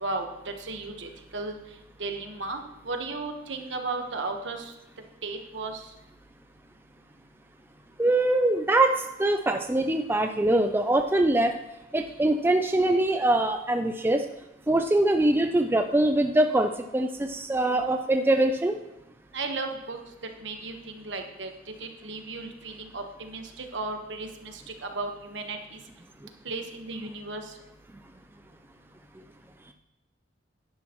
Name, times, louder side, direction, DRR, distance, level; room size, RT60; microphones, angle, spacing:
voice 1, 0.0-1.6 2.0-2.6 2.8-4.7 5.2-5.8 19.3-20.0 20.4-21.5 21.8-25.6 26.4-27.4, right 3 dB, 65° right, 4 dB, 1.2 m, -35 dB
voice 2, 8.0-8.9 9.2-11.5 11.9-14.2 14.7-18.8, right 1 dB, 10° right, 5 dB, 0.4 m, -23 dB
11.0 x 10.5 x 3.0 m, 0.94 s
head